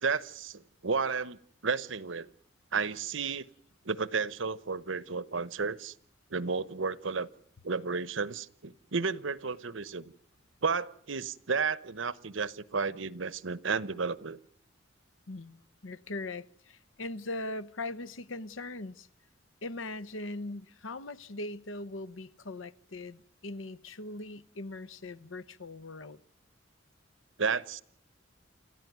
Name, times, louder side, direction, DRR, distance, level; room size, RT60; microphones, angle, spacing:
voice 1, 0.0-1.4 1.6-2.3 2.7-3.4 3.9-5.9 6.3-7.3 7.6-10.1 10.6-14.4 27.4-27.8, right 5 dB, 80° right, 1.0 m, -32 dB
voice 2, 15.3-19.1 19.6-26.2, left 2 dB, 90° left, 1.0 m, -40 dB
29.0 x 14.0 x 9.4 m
head